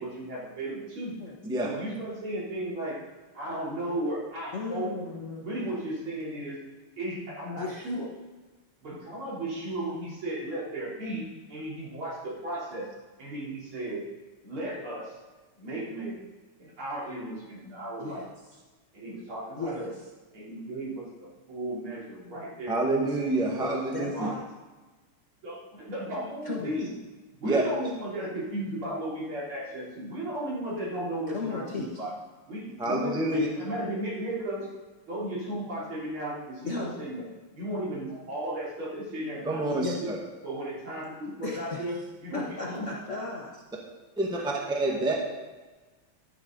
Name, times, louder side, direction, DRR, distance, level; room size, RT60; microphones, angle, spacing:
voice 1, 0.0-1.2 1.6-3.0 3.3-5.0 5.4-6.6 7.0-8.1 8.8-12.9 13.2-14.0 14.4-15.1 15.6-16.2 16.6-18.2 18.9-19.9 20.3-22.8 23.4-23.8 24.1-24.4 25.4-26.9 27.4-32.1 32.5-32.9 33.3-34.7 35.1-37.2 37.5-40.1 40.4-42.9 44.4-44.7, right 1 dB, 70° right, -7 dB, 4.4 m, -35 dB
voice 2, 4.5-5.5 7.6-7.9 18.0-18.3 19.6-19.9 22.9-23.1 23.9-24.4 26.4-26.9 31.3-32.0 32.9-33.6 36.6-37.1 39.7-40.0 41.4-42.0 42.3-43.6, left 3 dB, 40° left, -3 dB, 1.2 m, -36 dB
voice 3, 22.7-24.1 27.4-27.6 32.8-33.5 39.4-40.2 44.2-45.1, right 2 dB, ahead, -1 dB, 1.2 m, -27 dB
11.5 x 10.0 x 4.0 m, 1.3 s
omnidirectional pair, 2.4 m